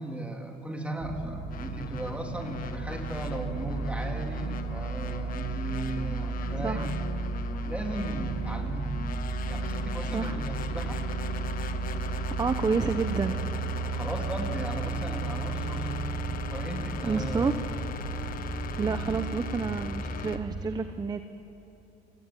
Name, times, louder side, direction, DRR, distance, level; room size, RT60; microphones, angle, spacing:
voice 1, 0.0-7.0 7.6-9.0 9.5-11.1 13.8-16.0 16.5-17.6, right 1 dB, 5° right, 1 dB, 3.7 m, -36 dB
sound 1, 1.0-20.6, right 4 dB, 75° right, 4.7 m, -34 dB
sound 2, 1.5-20.4, left 8 dB, 55° left, 1.4 m, -41 dB
voice 2, 6.5-6.9 10.1-10.4 12.4-13.4 17.0-17.5 18.8-21.2, right 4 dB, 25° right, 9 dB, 1.0 m, -29 dB
28.0 x 19.0 x 9.4 m, 3.0 s
cardioid pair, 110°, 17 cm